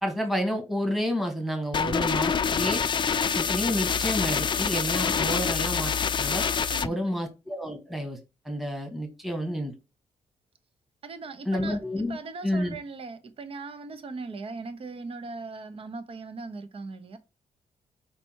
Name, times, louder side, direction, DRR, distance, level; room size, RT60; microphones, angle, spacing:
voice 1, 0.0-2.8 3.3-5.9 6.2-6.4 6.8-8.2 8.4-9.7 11.4-12.2 12.4-12.7, equal, ahead, 1.6 m, -29 dB
sound 1, 1.7-6.9, left 6 dB, 40° left, 0.5 m, -26 dB
voice 2, 6.7-7.2 11.0-11.8 12.1-17.2, right 3 dB, 45° right, 0.9 m, -39 dB
5.8 x 4.5 x 4.6 m
cardioid pair, 85°, 13 cm